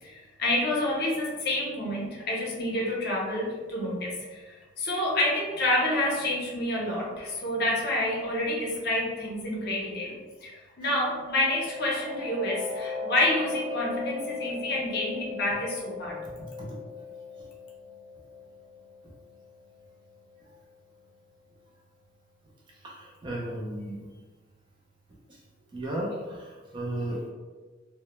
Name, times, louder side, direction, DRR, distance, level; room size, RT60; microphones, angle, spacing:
voice 1, 0.0-10.1 10.4-16.2, left 1 dB, 50° left, -4 dB, 0.6 m, -28 dB
sound 1, 11.0-20.4, left 4 dB, 80° right, 0.8 m, -38 dB
voice 2, 22.8-24.1 25.3-25.4 25.7-27.3, right 1 dB, 25° right, -3 dB, 0.3 m, -35 dB
2.1 x 2.0 x 2.9 m, 1.4 s
head